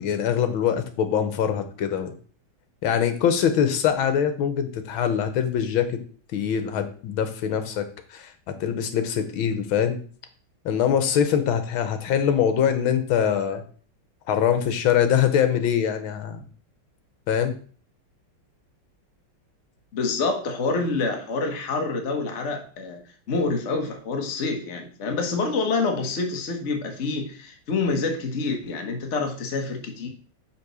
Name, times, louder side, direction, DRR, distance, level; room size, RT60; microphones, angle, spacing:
voice 1, 0.0-2.1 2.8-6.0 6.3-10.0 10.7-13.6 14.3-16.4 17.3-17.6, left 8 dB, 80° left, 9 dB, 1.7 m, -23 dB
voice 2, 19.9-23.0 23.3-30.1, left 3 dB, 40° left, 4 dB, 1.2 m, -27 dB
5.8 x 4.4 x 6.2 m, 0.43 s
omnidirectional pair, 2.2 m